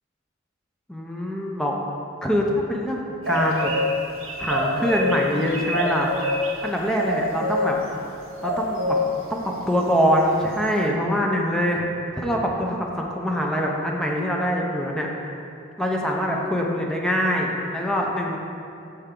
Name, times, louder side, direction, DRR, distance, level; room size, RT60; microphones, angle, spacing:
voice 1, 0.9-1.8 2.2-3.7 4.4-6.1 6.6-7.8 8.4-9.0 9.3-11.8 12.2-15.1 15.8-18.4, equal, 5° left, -1 dB, 0.7 m, -24 dB
sound 1, 3.2-3.9 4.2-5.2 5.5-6.5 7.0-7.6 8.4-9.0, equal, 85° right, 1.2 m, -25 dB
13.5 x 4.6 x 3.8 m, 2.6 s
head